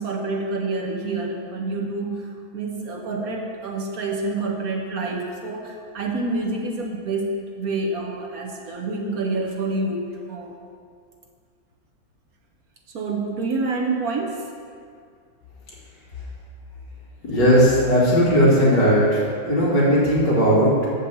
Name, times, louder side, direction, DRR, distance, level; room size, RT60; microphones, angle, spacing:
voice 1, 0.0-10.5 12.9-14.5, right 3 dB, 60° right, 0 dB, 1.1 m, -27 dB
voice 2, 17.2-20.9, equal, 65° left, -7 dB, 2.6 m, -17 dB
7.0 x 5.4 x 6.8 m, 2.2 s
omnidirectional pair, 2.1 m